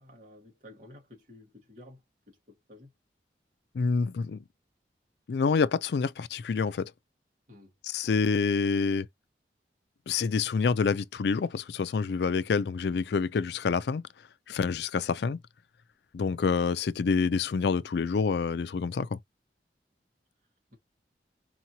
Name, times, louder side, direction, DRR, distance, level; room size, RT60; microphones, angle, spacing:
voice 1, 0.0-2.0 2.3-2.4 2.7-2.9 7.5-7.7 20.7-20.8, left 1 dB, 45° right, 1.8 m, -52 dB
voice 2, 3.7-4.4 5.3-6.9 7.8-9.1 10.1-14.0 14.5-15.4 16.1-19.2, left 5 dB, 75° left, 0.4 m, -27 dB
4.6 x 2.9 x 2.8 m
head